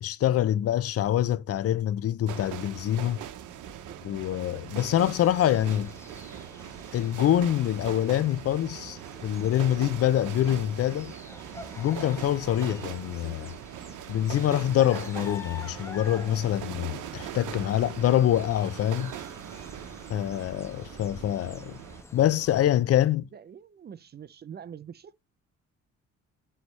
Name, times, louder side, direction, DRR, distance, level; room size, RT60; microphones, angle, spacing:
voice 1, 0.0-3.2 4.0-5.9 6.9-11.1 11.8-13.5 14.1-19.1 20.1-21.8 22.1-23.2, left 12 dB, 50° left, 0.4 m, -25 dB
sound 1, 2.3-22.0, right 10 dB, 85° right, 0.8 m, -41 dB
voice 2, 4.3-4.6 23.3-25.2, right 8 dB, 35° right, 0.4 m, -45 dB
sound 2, 4.7-22.6, left 3 dB, 10° left, 1.0 m, -48 dB
9.5 x 3.3 x 3.0 m
cardioid pair, 90°, 30 cm